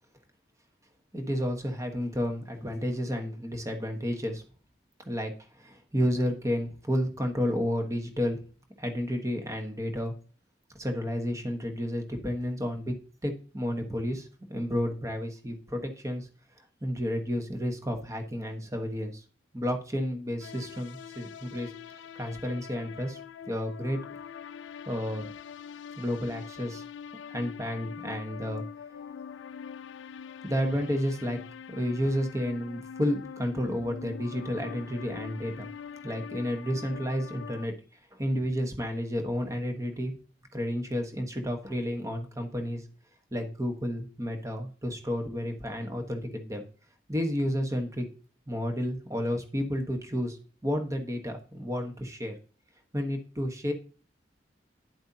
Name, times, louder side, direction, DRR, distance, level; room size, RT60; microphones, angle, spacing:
voice 1, 1.1-4.4 5.0-5.3 5.6-8.4 8.8-10.1 10.8-12.9 13.2-16.3 16.8-19.2 19.5-23.2 23.5-24.0 24.9-25.3 26.0-26.8 27.3-28.6 30.4-31.4 31.7-35.7 36.0-37.7 38.1-40.1 40.5-42.8 43.3-46.6 47.1-48.0 48.5-52.3 52.9-53.7, equal, 15° right, 5 dB, 1.2 m, -31 dB
sound 1, 20.4-37.7, left 7 dB, 85° left, 0.4 m, -43 dB
9.9 x 7.8 x 2.8 m, 0.39 s
head